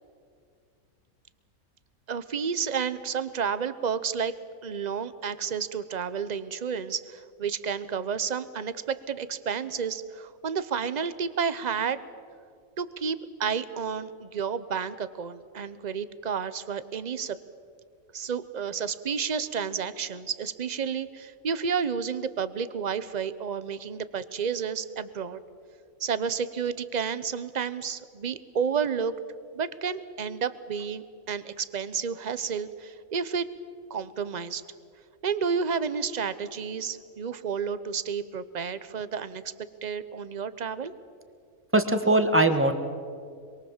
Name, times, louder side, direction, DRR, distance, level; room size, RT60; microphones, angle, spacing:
voice 1, 2.1-4.3 4.6-12.0 12.8-17.4 18.1-25.4 26.0-29.1 29.5-33.5 33.9-34.6 35.2-39.4 39.8-40.9, right 6 dB, 35° right, 14 dB, 0.8 m, -31 dB
voice 2, 41.7-42.7, right 2 dB, 10° right, 7 dB, 1.4 m, -21 dB
26.0 x 23.0 x 7.3 m, 2.2 s
omnidirectional pair, 1.5 m